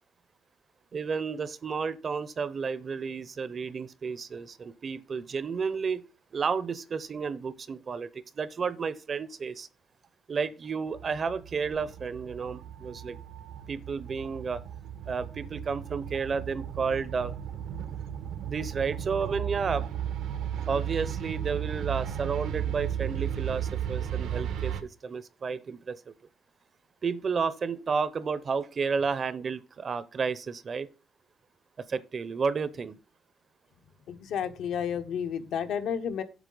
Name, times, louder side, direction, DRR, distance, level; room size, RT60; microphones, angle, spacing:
voice 1, 0.9-6.0 6.3-9.7 10.3-13.2 13.7-14.6 15.1-17.3 18.4-19.9 20.7-26.1 27.0-30.9 31.9-33.0, right 5 dB, 35° right, 0.6 m, -32 dB
sound 1, 10.9-24.8, right 9 dB, 80° right, 0.9 m, -35 dB
voice 2, 34.1-36.2, left 8 dB, 70° left, 1.0 m, -31 dB
8.1 x 7.3 x 3.8 m
cardioid pair, 145°, 0 cm